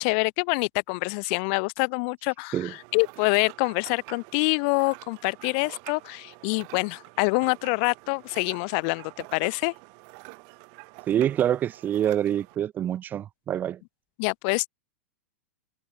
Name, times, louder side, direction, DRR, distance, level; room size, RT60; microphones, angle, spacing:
voice 1, 0.0-9.7 14.2-14.7, left 36 dB, 50° left, 1.9 m, -26 dB
sound 1, 2.7-12.6, right 40 dB or more, 50° right, 4.1 m, -47 dB
voice 2, 11.1-13.8, right 10 dB, 25° right, 0.5 m, -26 dB
hypercardioid pair, 110°, 7 cm